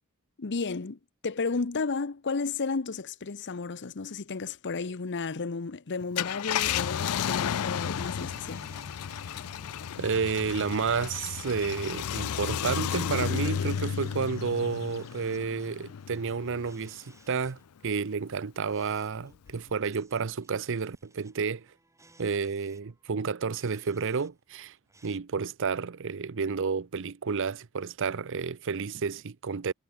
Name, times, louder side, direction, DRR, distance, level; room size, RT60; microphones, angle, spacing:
voice 1, 0.4-8.6, left 4 dB, 55° left, 0.8 m, -33 dB
Car, 6.0-16.8 17.3-17.4 19.5-19.7, left 8 dB, 75° left, 0.4 m, -33 dB
Bowed string instrument, 6.5-11.5, right 1 dB, 40° right, 4.1 m, -54 dB
sound 1, 7.3-24.3 24.6-25.2, right 3 dB, 15° right, 5.3 m, -62 dB
voice 2, 10.0-21.6 22.2-24.7 25.0-29.7, right 5 dB, 60° right, 0.6 m, -31 dB
head